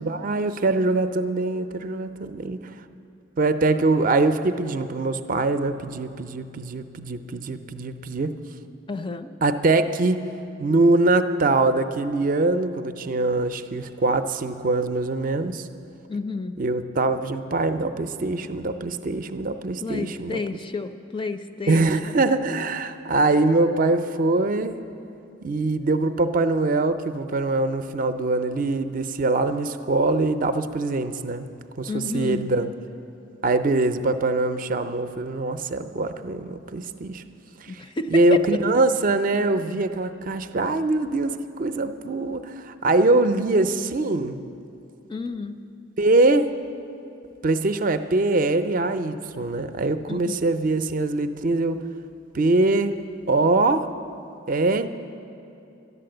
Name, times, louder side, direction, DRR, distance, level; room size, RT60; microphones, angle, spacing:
voice 1, 0.0-2.6 3.4-8.4 9.4-10.2 10.6-15.7 16.6-20.4 21.7-24.8 25.4-31.5 31.8-32.7 33.4-37.2 37.7-37.8 38.1-44.4 46.0-46.5 47.4-51.8 52.3-52.9 53.3-53.9 54.5-54.9, right 2 dB, 45° right, 10 dB, 0.5 m, -23 dB
voice 2, 8.9-9.3 16.1-16.5 19.8-21.9 31.9-32.5 37.7-38.4 45.1-45.6 50.1-50.4, left 3 dB, 25° left, 8 dB, 0.4 m, -30 dB
12.0 x 11.0 x 7.7 m, 2.7 s
head